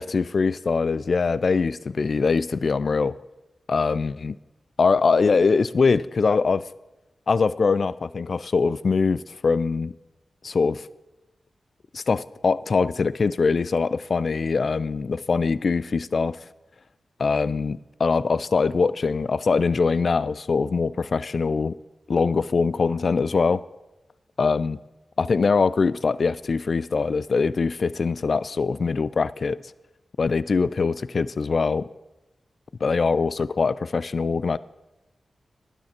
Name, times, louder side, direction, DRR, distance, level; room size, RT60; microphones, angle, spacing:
voice 1, 0.0-3.2 3.7-4.4 4.8-6.7 7.3-9.9 10.4-10.9 11.9-16.4 17.2-21.7 22.1-23.6 24.4-24.8 25.2-29.6 30.2-31.9 32.8-34.6, left 4 dB, 65° left, 0.3 m, -23 dB
12.0 x 9.8 x 4.4 m
cardioid pair, 45°, 0 cm